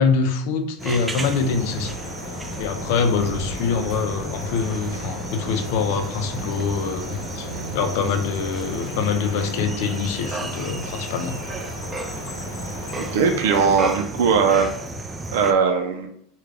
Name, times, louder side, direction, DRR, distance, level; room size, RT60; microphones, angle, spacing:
voice 1, 0.0-2.0 2.6-7.5 7.7-11.4, left 5 dB, 65° left, 7 dB, 0.6 m, -24 dB
Miramar Noche, 0.8-15.5, right 2 dB, 15° right, 0.4 m, -33 dB
winter outdoor ambience crow brids traffic fountain, 1.2-14.0, left 2 dB, 90° left, 0.8 m, -36 dB
voice 2, 13.0-14.7 15.3-16.1, right 6 dB, 80° right, 4 dB, 0.5 m, -19 dB
3.6 x 2.4 x 3.3 m, 0.67 s
supercardioid pair, 125°, 0 cm